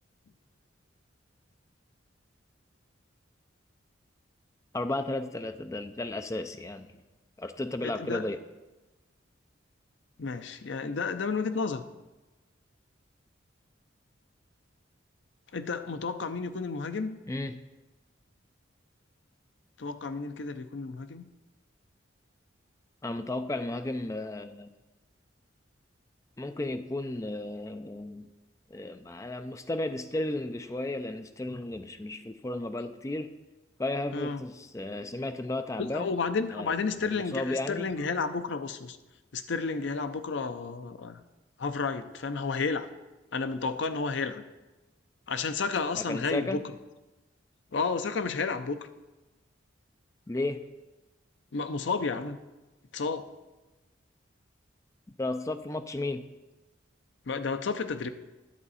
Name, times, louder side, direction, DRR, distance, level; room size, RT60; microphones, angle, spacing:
voice 1, 4.7-6.9 7.4-8.4 17.3-17.6 23.0-24.7 26.4-28.3 28.7-33.3 33.8-36.2 36.5-36.7 37.0-37.9 45.9-46.7 50.3-50.6 55.2-56.2, left 2 dB, 15° left, 9 dB, 0.4 m, -34 dB
voice 2, 7.8-8.2 10.2-11.8 15.5-17.2 19.8-21.2 34.1-34.4 35.8-39.0 39.3-41.2 41.6-42.9 43.3-44.4 45.3-46.6 47.7-48.8 51.5-52.4 52.9-53.3 57.3-58.1, left 4 dB, 65° left, 10 dB, 0.5 m, -31 dB
10.5 x 7.7 x 4.1 m, 1.1 s
head